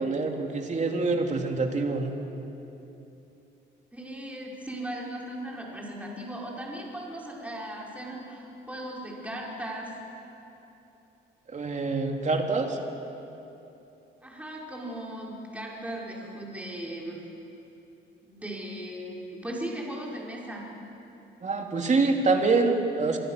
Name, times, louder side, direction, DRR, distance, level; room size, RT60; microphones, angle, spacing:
voice 1, 0.0-2.1 11.5-12.8 21.4-23.2, right 3 dB, 35° right, 3 dB, 3.1 m, -25 dB
voice 2, 3.9-9.9 14.2-17.2 18.2-20.7, right 1 dB, 5° right, -4 dB, 5.7 m, -37 dB
26.0 x 24.5 x 6.8 m, 2.9 s
cardioid pair, 90°, 20 cm